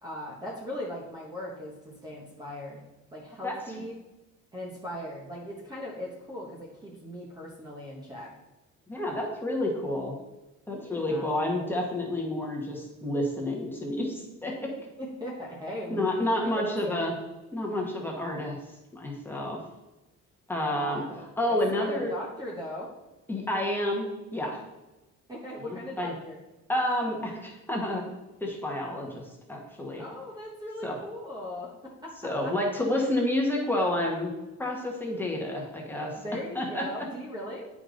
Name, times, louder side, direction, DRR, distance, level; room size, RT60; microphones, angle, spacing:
voice 1, 0.0-3.9 4.5-8.3 10.7-11.3 15.0-17.1 20.6-21.2 21.5-22.9 25.3-26.4 30.0-32.5 36.2-37.7, left 1 dB, 15° right, -3 dB, 1.0 m, -39 dB
voice 2, 8.9-10.2 10.7-14.7 15.9-17.1 17.5-18.6 18.9-19.6 20.5-21.0 21.4-22.1 23.3-24.6 25.6-26.1 26.7-28.0 28.4-30.0 30.8-31.0 32.2-34.3 34.6-36.2 36.5-36.8, left 1 dB, 5° left, -1 dB, 1.3 m, -29 dB
9.8 x 5.1 x 3.9 m, 1.0 s
cardioid pair, 180°, 29 cm